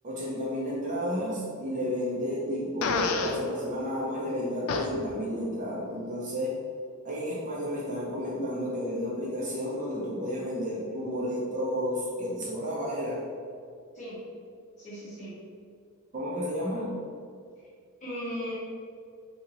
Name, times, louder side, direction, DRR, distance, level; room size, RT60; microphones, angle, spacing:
voice 1, 0.0-6.6 7.0-13.2 16.1-16.9, equal, 35° right, -5 dB, 0.6 m, -31 dB
Fart, 2.8-3.4 4.7-4.9, left 5 dB, 70° left, 0.3 m, -28 dB
voice 2, 14.8-15.4 18.0-18.5, equal, 35° left, -10 dB, 1.4 m, -37 dB
2.9 x 2.8 x 3.9 m, 2.2 s
head